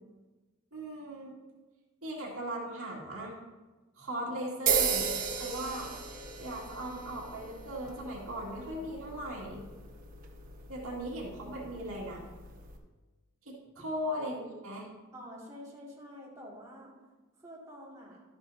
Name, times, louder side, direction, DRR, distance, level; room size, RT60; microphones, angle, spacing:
voice 1, 0.7-1.3 2.0-3.3 4.0-5.9 6.4-9.6 10.7-12.2 13.5-14.9, equal, 70° right, -3 dB, 2.2 m, -38 dB
sound 1, 4.7-12.8, right 6 dB, 40° right, 1.1 m, -36 dB
voice 2, 15.1-16.9 17.4-18.2, equal, 15° right, -6 dB, 2.3 m, -48 dB
12.0 x 9.2 x 2.8 m, 1.2 s
head